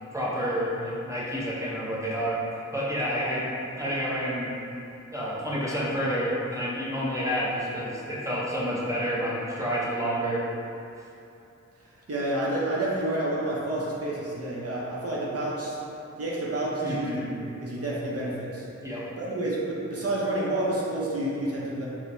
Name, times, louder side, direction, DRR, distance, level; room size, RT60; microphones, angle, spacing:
voice 1, 0.1-2.4 2.7-3.4 3.8-4.5 5.1-10.4 16.8-17.3 18.8-19.0, equal, 10° right, -7 dB, 0.7 m, -29 dB
voice 2, 12.1-15.8 16.2-17.2 17.6-18.7 19.2-21.9, right 1 dB, 50° right, -6 dB, 0.6 m, -29 dB
4.4 x 2.1 x 2.6 m, 2.8 s
wide cardioid pair, 90°, 30 cm